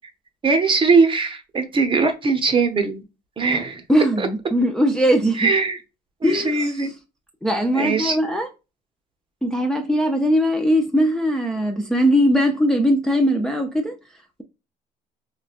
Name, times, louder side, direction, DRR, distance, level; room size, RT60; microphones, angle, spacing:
voice 1, 0.4-3.0 3.4-3.8 4.2-4.3 5.4-5.8 6.2-6.9 7.7-8.2, right 4 dB, 30° right, 0.7 m, -20 dB
voice 2, 3.9-5.5 6.2-6.9 7.4-8.5 9.4-14.0, equal, 5° left, 0.4 m, -20 dB
3.7 x 2.3 x 2.4 m
cardioid pair, 110°, 17 cm